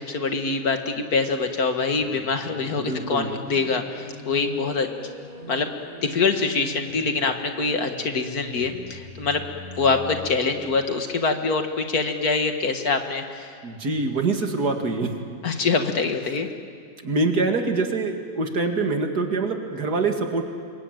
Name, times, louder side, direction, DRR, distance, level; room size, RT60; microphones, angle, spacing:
voice 1, 0.0-4.9 5.5-5.7 6.0-9.4 9.8-13.5 15.4-16.5, left 4 dB, 60° left, 6 dB, 2.1 m, -24 dB
sound 1, 2.0-11.9, left 1 dB, 20° right, 5.3 m, -42 dB
voice 2, 2.8-3.3 13.6-15.3 17.0-20.5, right 3 dB, 65° right, 4 dB, 2.7 m, -25 dB
27.5 x 23.0 x 9.1 m, 2.2 s
omnidirectional pair, 1.8 m